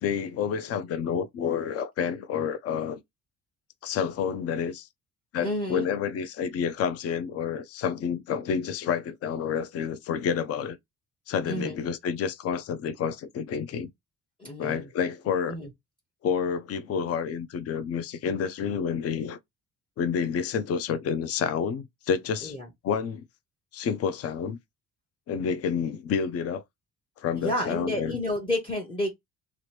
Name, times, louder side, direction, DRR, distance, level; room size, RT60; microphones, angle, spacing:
voice 1, 0.0-3.0 3.8-4.9 5.3-10.8 11.3-13.9 14.6-15.5 16.2-19.4 20.0-22.5 22.8-23.2 23.7-24.6 25.3-26.6 27.2-28.2, left 7 dB, 55° left, 0.5 m, -29 dB
voice 2, 5.4-5.9 11.4-11.8 14.4-14.9 15.5-15.7 22.4-22.7 27.3-29.1, left 1 dB, 20° left, 0.8 m, -30 dB
2.9 x 2.5 x 3.2 m
cardioid pair, 125°, 30 cm